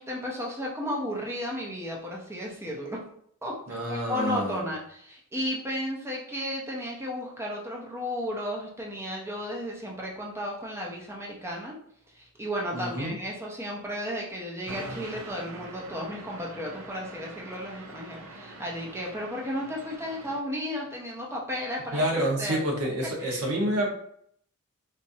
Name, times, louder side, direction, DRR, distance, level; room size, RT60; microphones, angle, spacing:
voice 1, 0.0-3.1 3.4-11.7 12.1-22.1 22.4-22.6 23.0-23.5, equal, 10° right, -2 dB, 0.7 m, -34 dB
voice 2, 3.7-4.6 12.7-13.1 21.9-23.9, right 1 dB, 90° right, -1 dB, 1.0 m, -28 dB
sound 1, 14.7-20.4, right 2 dB, 70° right, 0.5 m, -44 dB
4.1 x 2.5 x 2.6 m, 0.67 s
head